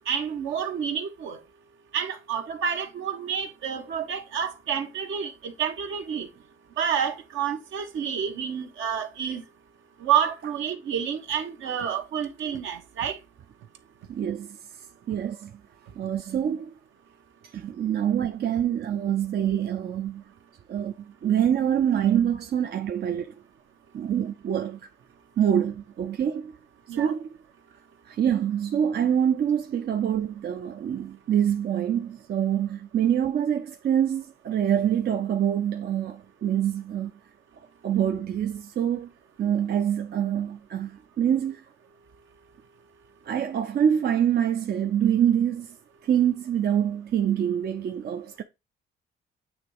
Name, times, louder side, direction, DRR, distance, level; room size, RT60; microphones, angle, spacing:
voice 1, 0.1-1.4 1.9-6.3 6.8-9.4 10.0-13.2 26.9-27.1, right 8 dB, 75° right, 1.4 m, -29 dB
voice 2, 14.1-14.6 15.1-15.5 16.0-16.7 17.5-20.2 20.7-20.9 21.2-23.3 23.9-24.8 25.4-26.5 27.0-27.3 28.0-37.1 37.8-39.1 39.4-41.6 43.2-45.7 46.0-48.4, right 9 dB, 55° right, 0.7 m, -25 dB
8.9 x 3.0 x 4.8 m
cardioid pair, 90°, 20 cm